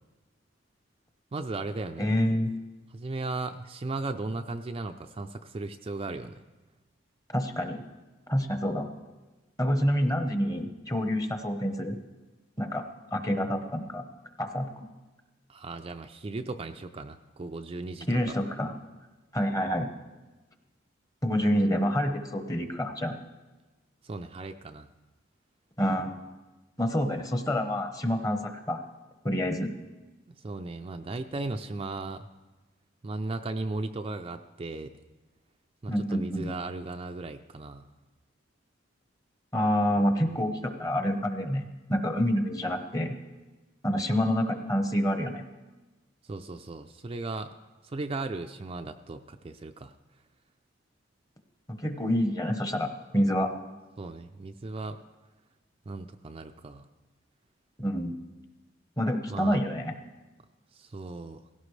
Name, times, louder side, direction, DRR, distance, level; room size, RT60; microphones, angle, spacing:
voice 1, 1.3-2.1 2.9-6.4 15.5-18.4 24.0-24.9 30.3-32.3 33.0-34.9 35.8-37.8 46.2-47.5 47.8-49.9 54.0-55.0 55.9-56.9 59.3-59.6 60.7-61.4, right 3 dB, 30° right, 6 dB, 0.4 m, -36 dB
voice 2, 2.0-2.5 7.3-7.8 8.3-8.9 9.6-12.0 12.6-12.8 13.1-14.0 14.4-14.9 18.1-18.7 19.3-19.9 21.2-23.2 25.8-26.2 26.8-28.8 29.2-29.7 35.9-36.5 39.5-43.2 43.8-45.4 51.7-53.5 57.8-58.2 59.0-59.9, equal, 20° left, 6 dB, 1.0 m, -27 dB
17.0 x 16.5 x 3.2 m, 1.2 s
head